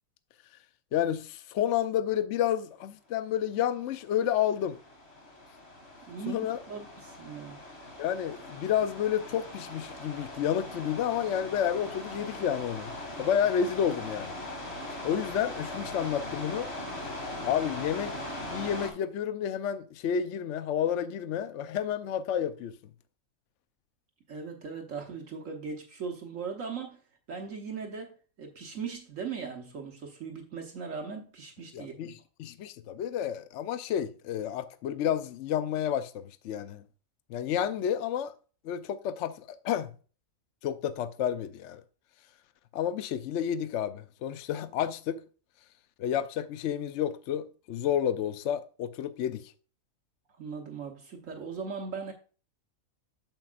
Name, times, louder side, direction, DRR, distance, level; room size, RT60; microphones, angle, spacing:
voice 1, 0.9-4.8 6.3-6.6 8.0-12.9 13.2-14.4 15.0-16.7 17.4-18.2 18.5-22.7 31.7-36.8 37.3-38.3 38.6-39.9 40.6-41.8 42.7-45.2 46.0-49.5, left 9 dB, 65° left, 0.8 m, -30 dB
sound 1, 3.8-18.9, left 1 dB, 50° left, 2.4 m, -40 dB
voice 2, 6.0-7.6 24.3-27.0 27.3-32.1 50.4-52.1, right 5 dB, 70° right, 1.5 m, -39 dB
9.0 x 7.2 x 2.5 m
omnidirectional pair, 1.4 m